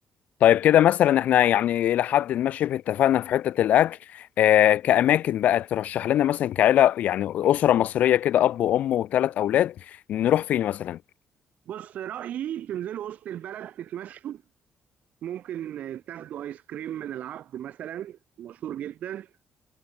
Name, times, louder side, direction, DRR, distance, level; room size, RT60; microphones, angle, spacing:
voice 1, 0.4-9.7 10.1-11.0, left 11 dB, 75° left, 0.5 m, -21 dB
voice 2, 11.7-14.4 15.2-19.3, right 11 dB, 75° right, 3.3 m, -35 dB
cardioid pair, 70°, 3 cm